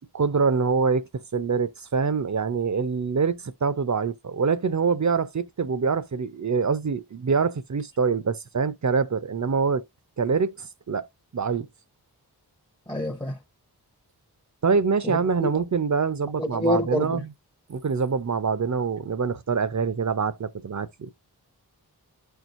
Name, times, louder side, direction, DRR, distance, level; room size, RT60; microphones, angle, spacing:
voice 1, 0.0-9.8 10.2-11.1 11.3-11.7 14.6-17.3 17.7-21.1, right 5 dB, 45° right, 0.7 m, -25 dB
voice 2, 12.9-13.4 15.0-15.5 16.4-17.2, left 1 dB, 10° left, 0.9 m, -27 dB
13.0 x 4.6 x 2.5 m
cardioid pair, 40°, 40 cm